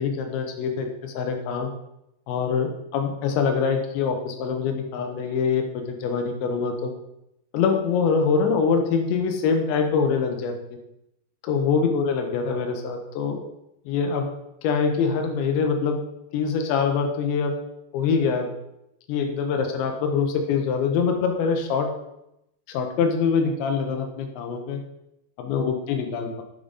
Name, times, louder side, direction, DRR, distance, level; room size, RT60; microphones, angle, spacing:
voice 1, 0.0-1.7 2.3-6.9 7.5-10.5 11.4-13.4 13.9-14.3 14.6-16.0 16.3-17.5 17.9-18.5 19.1-21.9 22.7-24.8 25.4-26.4, left 5 dB, 80° left, 4 dB, 3.2 m, -24 dB
9.4 x 5.1 x 4.1 m, 0.84 s
omnidirectional pair, 5.1 m